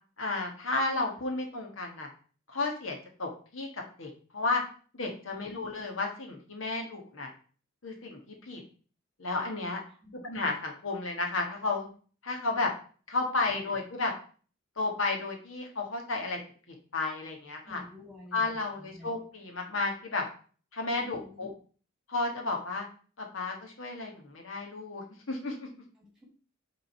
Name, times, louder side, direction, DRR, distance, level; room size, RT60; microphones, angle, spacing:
voice 1, 0.2-2.1 2.5-4.6 4.9-7.3 7.8-8.2 8.5-8.6 9.2-9.8 10.2-11.9 12.2-12.7 13.1-14.1 14.8-16.4 16.9-17.8 18.3-20.2 20.7-21.5 22.1-22.9 23.2-25.7, left 3 dB, 75° left, 1 dB, 1.6 m, -32 dB
voice 2, 9.9-10.2 13.5-13.6 17.6-19.1 21.0-21.5 26.0-26.2, left 1 dB, 5° right, -2 dB, 2.5 m, -50 dB
8.6 x 3.8 x 4.4 m, 0.41 s
head